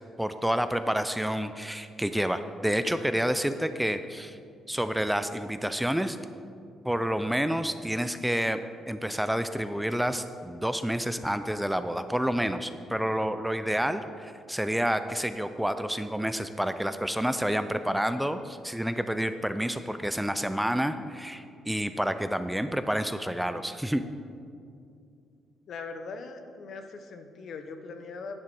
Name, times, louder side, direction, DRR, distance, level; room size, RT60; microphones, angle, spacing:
voice 1, 0.2-4.4 4.7-6.2 6.8-8.6 8.9-24.0, equal, 5° right, 10 dB, 0.4 m, -29 dB
voice 2, 25.7-28.4, left 4 dB, 60° left, 7 dB, 0.9 m, -40 dB
10.5 x 7.6 x 4.6 m, 2.4 s
cardioid pair, 90°, 0 cm